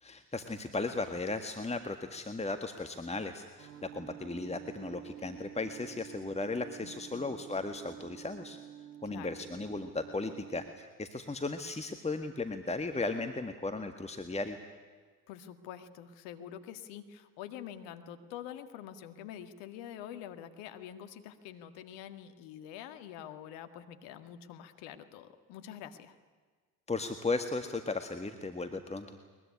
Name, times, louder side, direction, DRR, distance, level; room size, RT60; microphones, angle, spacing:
voice 1, 0.0-8.6 9.0-14.6 26.9-29.1, left 3 dB, 15° left, 7 dB, 1.8 m, -36 dB
sound 1, 3.6-10.7, right 10 dB, 85° right, 2.6 m, -49 dB
voice 2, 6.8-7.4 9.1-9.3 15.3-26.1, left 10 dB, 70° left, 9 dB, 1.9 m, -46 dB
22.0 x 21.5 x 9.9 m, 1.5 s
hypercardioid pair, 60°, 45 cm